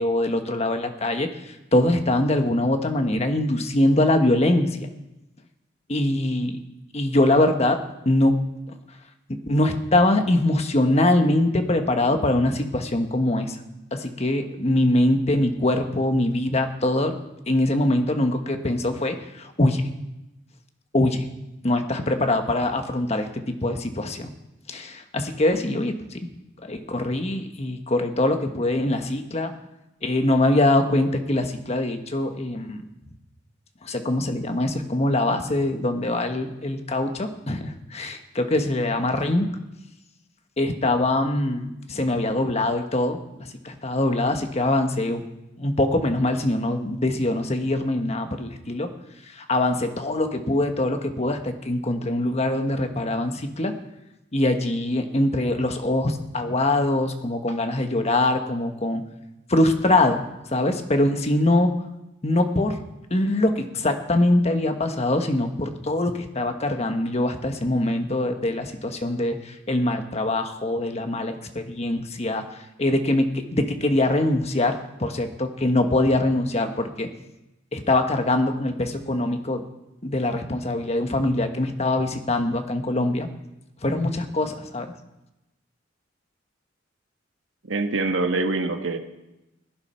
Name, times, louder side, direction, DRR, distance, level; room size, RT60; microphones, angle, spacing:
voice 1, 0.0-1.3 1.7-4.8 5.9-6.6 6.9-8.3 9.4-13.6 13.9-17.2 17.5-19.8 20.9-21.2 21.6-24.3 24.7-26.3 26.6-29.5 30.0-32.8 33.8-39.5 40.6-45.2 45.6-48.9 49.3-53.8 54.3-59.0 59.5-60.2 60.5-61.7 62.2-62.8 63.1-72.5 72.8-77.1 77.7-79.6 80.0-83.3 83.8-84.9, left 1 dB, 35° left, 6 dB, 1.2 m, -23 dB
voice 2, 87.6-89.0, right 3 dB, 85° right, 6 dB, 1.4 m, -24 dB
16.0 x 10.5 x 5.7 m, 0.93 s
head